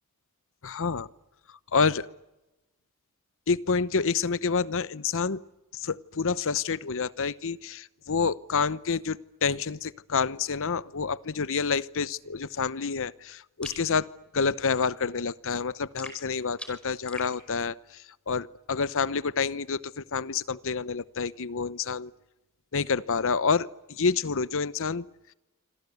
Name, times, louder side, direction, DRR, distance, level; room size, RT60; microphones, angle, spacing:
voice 1, 0.6-1.1 1.7-2.1 3.5-5.4 5.7-22.1 22.7-25.1, left 5 dB, 65° left, 17 dB, 0.9 m, -28 dB
sound 1, 13.6-13.9 16.0-17.3, left 1 dB, 5° left, 5.2 m, -42 dB
26.5 x 26.0 x 8.3 m, 0.99 s
head